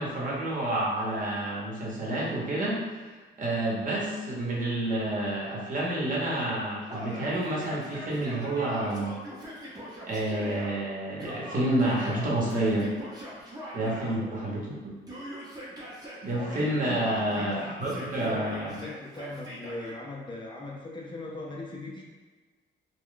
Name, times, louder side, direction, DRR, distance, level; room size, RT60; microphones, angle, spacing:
voice 1, 0.0-2.8 3.4-9.2 10.1-12.9 13.7-14.9 16.2-18.7, right 1 dB, 45° right, -4 dB, 1.0 m, -29 dB
Yell, 6.9-10.7 11.2-14.2 15.1-16.8 17.1-20.0, equal, 20° right, 0.8 m, -41 dB
voice 2, 16.8-22.1, left 2 dB, 25° left, -2 dB, 0.5 m, -40 dB
2.3 x 2.2 x 3.7 m, 1.4 s
cardioid pair, 90°, 20 cm